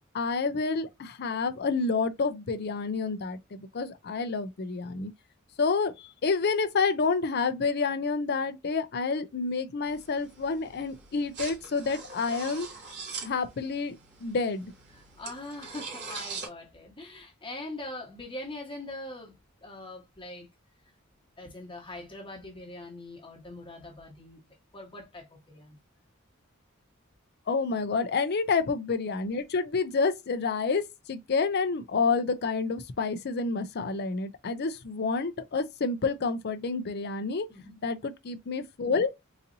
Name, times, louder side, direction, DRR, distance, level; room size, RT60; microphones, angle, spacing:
voice 1, 0.1-5.1 5.6-12.7 13.2-14.7 27.5-37.5 37.8-39.1, left 4 dB, 50° left, 0.5 m, -29 dB
sound 1, 9.8-16.5, right 4 dB, 55° right, 1.7 m, -43 dB
voice 2, 15.2-19.3 19.6-20.5 21.4-24.4 24.7-25.8 37.5-37.8, left 2 dB, 25° left, 1.3 m, -42 dB
4.0 x 2.7 x 2.6 m
head